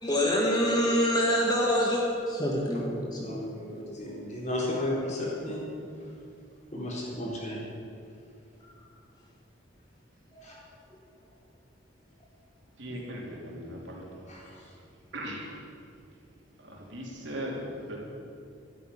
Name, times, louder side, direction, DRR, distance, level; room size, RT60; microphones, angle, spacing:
voice 1, 0.0-3.3 10.5-10.6, equal, 20° left, -2 dB, 1.6 m, -26 dB
voice 2, 3.2-5.6 6.7-7.6 10.4-10.5 12.9-13.0 14.3-14.6, left 1 dB, 35° left, -4 dB, 4.3 m, -34 dB
voice 3, 12.8-14.0 15.1-15.4 16.6-18.0, equal, 70° right, -2 dB, 3.5 m, -38 dB
13.0 x 9.5 x 10.0 m, 2.5 s
head